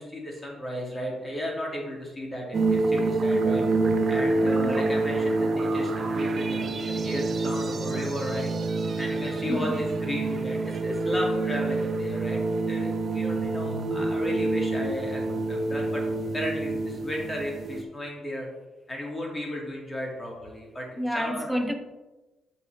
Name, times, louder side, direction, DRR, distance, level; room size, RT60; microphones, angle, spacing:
voice 1, 0.0-3.6 4.1-8.5 9.0-16.0 16.3-18.5 18.9-21.5, equal, 20° left, 2.4 m, -34 dB
sound 1, 2.5-17.8, right 2 dB, 45° right, 0.8 m, -27 dB
voice 2, 4.6-5.1 9.5-9.9 21.0-21.7, equal, ahead, 0.8 m, -30 dB
7.8 x 5.7 x 3.3 m
cardioid pair, 90°, 0 cm